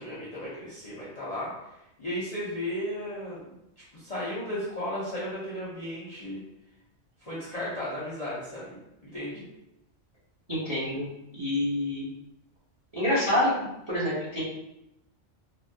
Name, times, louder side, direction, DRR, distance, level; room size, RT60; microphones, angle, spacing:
voice 1, 0.0-6.4 7.2-9.5, left 1 dB, 40° left, -9 dB, 0.6 m, -35 dB
voice 2, 10.5-11.1 11.3-12.1 12.9-13.5 13.9-14.4, left 1 dB, 25° right, -9 dB, 0.8 m, -27 dB
3.5 x 2.0 x 2.7 m, 0.87 s
omnidirectional pair, 1.4 m